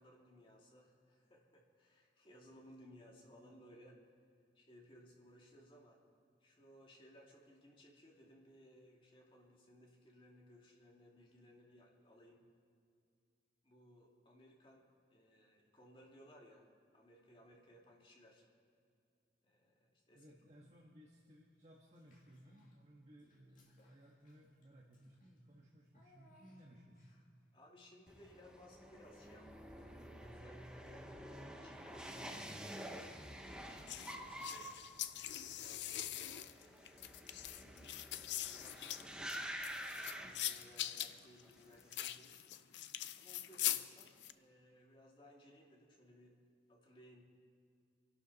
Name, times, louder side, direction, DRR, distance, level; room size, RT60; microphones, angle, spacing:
voice 1, 0.0-4.0 4.5-6.0 6.4-12.5 13.6-14.9 15.1-18.5 19.4-20.3 27.5-31.1 31.6-34.8 35.3-37.9 38.3-39.3 39.8-42.6 43.2-46.4 46.7-47.2, equal, 30° left, -2 dB, 2.4 m, -62 dB
voice 2, 20.1-27.1, equal, 35° right, -2 dB, 1.5 m, -61 dB
Child speech kid speaking / Bathtub (filling or washing), 21.9-22.8 23.2-27.4, left 1 dB, 45° left, 2.2 m, -72 dB
sound 1, 28.1-41.2 41.4-42.0, equal, 5° right, 1.0 m, -49 dB
sound 2, 33.9-44.3, left 12 dB, 70° left, 0.5 m, -42 dB
27.0 x 12.0 x 4.2 m, 2.4 s
head